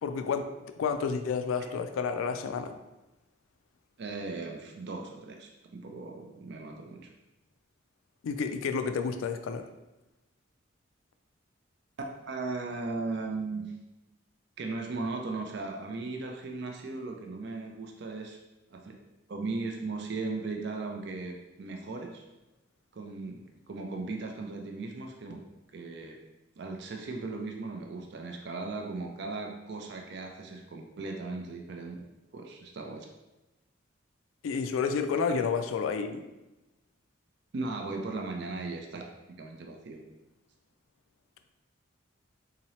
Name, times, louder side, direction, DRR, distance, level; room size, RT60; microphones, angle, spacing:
voice 1, 0.0-2.7 8.2-9.6 34.4-36.2, left 5 dB, 80° left, 7 dB, 0.3 m, -30 dB
voice 2, 4.0-7.1 12.2-13.6 14.6-18.4 18.7-18.9 19.3-22.2 22.9-25.4 25.7-26.2 26.6-32.0 32.3-33.1 37.5-39.1 39.4-40.0, right 3 dB, 55° right, 2 dB, 0.4 m, -37 dB
3.7 x 2.8 x 3.1 m, 1.0 s
head